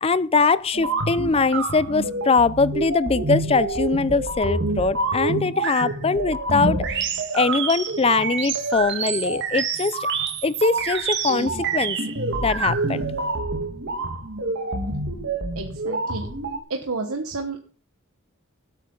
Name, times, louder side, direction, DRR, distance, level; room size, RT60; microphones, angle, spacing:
voice 1, 0.0-7.1 7.3-10.0 10.4-12.0 12.4-13.0, left 4 dB, 25° left, 0.5 m, -22 dB
sound 1, 0.7-16.6, right 3 dB, 55° right, 1.7 m, -27 dB
voice 2, 15.6-16.3 16.7-17.6, right 3 dB, 80° right, 1.2 m, -30 dB
17.5 x 8.3 x 3.9 m
head